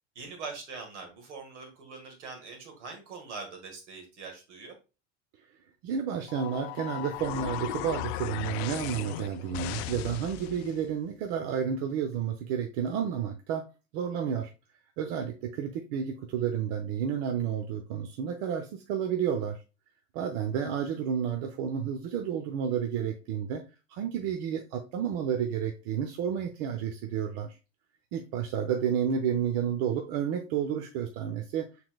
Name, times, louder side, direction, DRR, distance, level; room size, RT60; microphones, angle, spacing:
voice 1, 0.2-4.7, right 4 dB, 80° right, 3 dB, 1.8 m, -43 dB
voice 2, 5.8-13.6 13.9-14.5 15.0-19.6 20.1-23.6 23.9-27.6 28.1-31.7, right 8 dB, 60° right, 5 dB, 0.7 m, -31 dB
sound 1, 6.3-10.8, left 14 dB, 60° left, 0.5 m, -37 dB
5.7 x 3.9 x 2.3 m, 0.30 s
hypercardioid pair, 90°, 36 cm